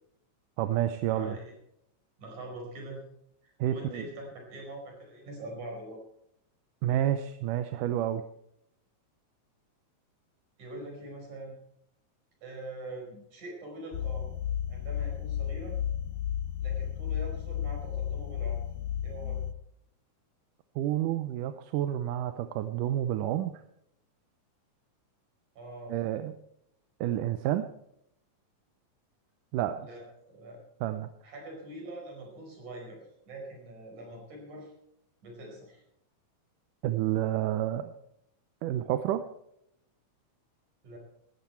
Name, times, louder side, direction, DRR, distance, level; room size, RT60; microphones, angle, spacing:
voice 1, 0.6-1.4 3.6-4.0 6.8-8.2 20.8-23.6 25.9-26.3 27.0-27.7 29.5-29.9 30.8-31.1 36.8-37.9 38.6-39.2, right 12 dB, 85° right, 9 dB, 2.3 m, -29 dB
voice 2, 1.1-1.5 2.2-3.0 3.4-6.0 10.6-11.5 12.4-14.3 14.7-15.8 16.6-18.6 19.0-19.4 25.6-25.9 29.8-30.6 31.2-33.0 33.3-34.7 35.2-35.8 40.8-41.0, right 1 dB, 65° right, 0 dB, 6.4 m, -43 dB
sound 1, 13.9-19.5, left 9 dB, 70° left, 1.9 m, -33 dB
18.5 x 13.0 x 4.5 m, 0.76 s
omnidirectional pair, 3.6 m